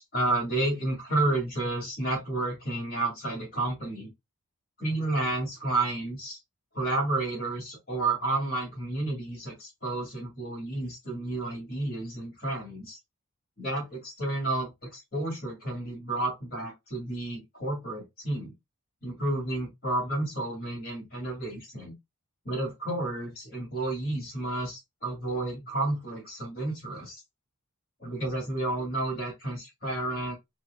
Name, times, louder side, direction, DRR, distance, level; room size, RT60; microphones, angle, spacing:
voice 1, 0.0-4.1 4.8-6.4 6.7-13.0 13.6-18.5 19.0-22.0 22.4-27.2 28.0-30.3, right 2 dB, 40° left, 2.2 m, -31 dB
6.0 x 2.6 x 2.2 m
head